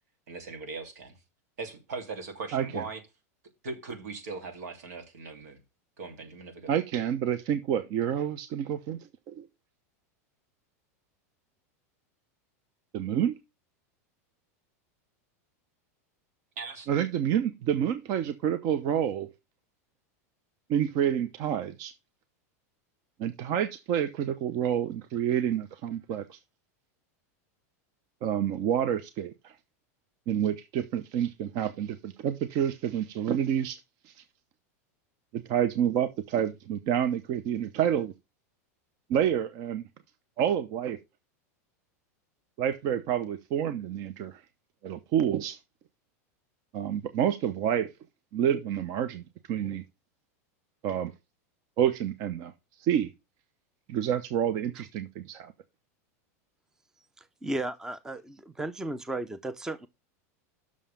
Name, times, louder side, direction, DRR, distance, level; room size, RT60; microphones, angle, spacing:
voice 1, 0.3-1.2 1.6-3.0 3.6-5.6 6.0-6.7 16.6-16.9, right 4 dB, 85° right, 3.0 m, -39 dB
voice 2, 2.5-2.8 6.7-9.0 9.3-9.5 12.9-13.4 16.9-19.3 20.7-21.9 23.2-26.4 28.2-29.5 30.3-33.8 34.1-34.2 35.3-38.1 39.1-39.8 40.4-41.0 42.6-44.4 44.8-45.6 46.7-47.9 48.3-49.8 50.8-51.1 51.8-52.5 52.8-53.1 53.9-55.5, right 9 dB, 45° right, 0.8 m, -28 dB
voice 3, 57.2-59.9, right 2 dB, 5° right, 0.6 m, -35 dB
6.4 x 5.5 x 7.0 m
supercardioid pair, 140°, 8 cm